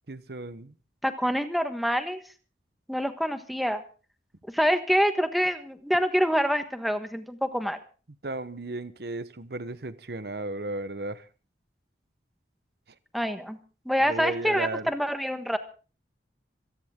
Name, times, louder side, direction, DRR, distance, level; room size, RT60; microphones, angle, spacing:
voice 1, 0.1-0.7 8.2-11.3 14.0-14.9, right 2 dB, 60° right, 1.0 m, -34 dB
voice 2, 1.0-2.2 2.9-3.8 4.5-7.8 13.1-13.6 13.8-15.6, equal, ahead, 1.3 m, -26 dB
26.5 x 10.5 x 3.7 m
head